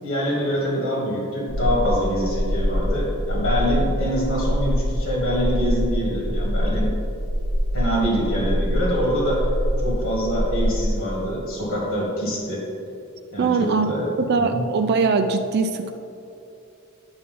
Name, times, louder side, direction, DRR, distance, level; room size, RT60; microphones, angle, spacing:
voice 1, 0.0-6.9 7.7-9.4 9.8-12.6 13.3-14.7, equal, 75° left, -3 dB, 1.7 m, -25 dB
sound 1, 1.5-10.9, equal, 75° right, 1.0 m, -24 dB
voice 2, 13.4-13.9 14.2-15.9, right 4 dB, 50° right, 7 dB, 0.4 m, -21 dB
9.5 x 5.8 x 3.8 m, 2.8 s
head